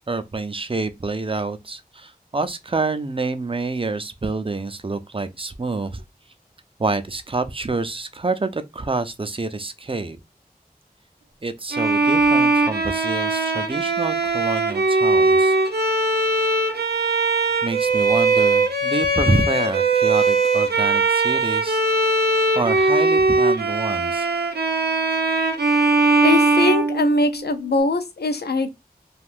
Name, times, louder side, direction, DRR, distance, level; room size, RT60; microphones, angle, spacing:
voice 1, 0.1-6.0 6.8-10.2 11.4-15.6 17.6-21.8 22.5-24.3, right 3 dB, 35° right, 0.4 m, -27 dB
Bowed string instrument, 11.7-27.6, right 3 dB, 85° right, 0.6 m, -20 dB
voice 2, 26.2-28.7, left 2 dB, 85° left, 0.5 m, -22 dB
2.5 x 2.4 x 3.4 m
wide cardioid pair, 40°, 16 cm